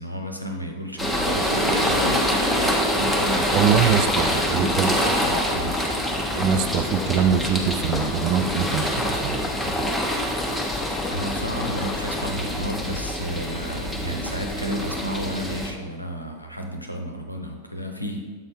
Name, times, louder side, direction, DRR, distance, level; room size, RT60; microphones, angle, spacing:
voice 1, 0.0-5.9 11.1-18.2, equal, 90° left, 3 dB, 0.7 m, -32 dB
sound 1, 1.0-15.7, equal, ahead, 0.9 m, -25 dB
sound 2, 1.3-12.3, left 5 dB, 25° left, 0.4 m, -35 dB
voice 2, 3.5-5.0 6.3-9.5 14.1-14.2, right 8 dB, 40° right, 10 dB, 0.4 m, -23 dB
7.5 x 4.0 x 3.7 m, 1.5 s
figure-of-eight pair, 90°, 0 cm